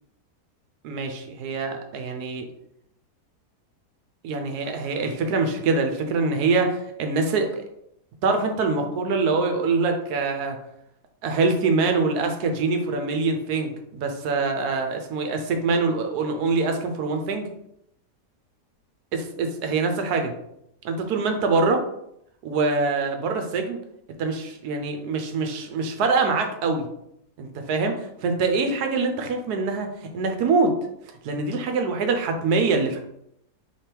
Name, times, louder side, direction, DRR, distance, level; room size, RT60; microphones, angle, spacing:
voice 1, 0.8-2.5 4.2-7.6 8.2-10.6 11.2-17.5 19.1-20.3 20.8-21.8 22.4-23.8 24.2-26.9 27.4-30.8 31.2-33.0, right 4 dB, 75° right, 5 dB, 1.1 m, -24 dB
3.4 x 3.4 x 4.4 m, 0.77 s
omnidirectional pair, 1.7 m